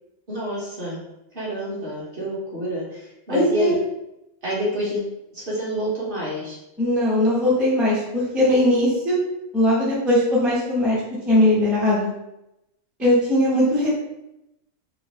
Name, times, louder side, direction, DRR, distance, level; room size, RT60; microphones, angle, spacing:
voice 1, 0.3-1.0 1.3-3.8 4.4-6.6, equal, 40° right, -7 dB, 1.3 m, -28 dB
voice 2, 3.3-3.8 6.8-9.2 9.5-12.1 13.0-13.9, left 1 dB, ahead, -7 dB, 0.5 m, -20 dB
4.0 x 2.2 x 3.0 m, 0.87 s
omnidirectional pair, 1.5 m